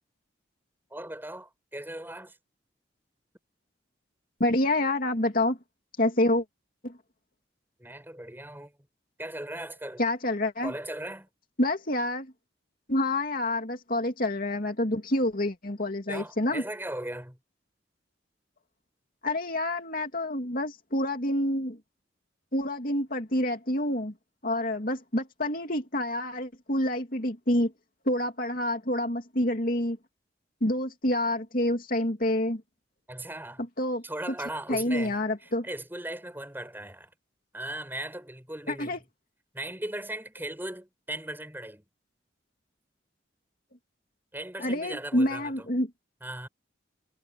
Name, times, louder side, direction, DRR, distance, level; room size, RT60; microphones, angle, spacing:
voice 1, 0.9-2.4 7.8-8.7 9.2-10.0 10.6-11.3 16.1-17.4 33.1-33.7 34.0-37.1 37.5-39.0 39.5-41.9 44.3-45.7 46.2-46.5, right 1 dB, 10° right, 7.7 m, -38 dB
voice 2, 4.4-5.6 6.0-6.4 6.8-6.9 10.0-10.7 11.6-12.3 12.9-16.6 19.2-21.8 22.5-24.1 24.4-27.7 28.1-30.0 30.6-32.6 33.8-34.0 34.7-35.7 38.7-39.0 44.6-45.9, left 1 dB, 50° left, 2.9 m, -27 dB
head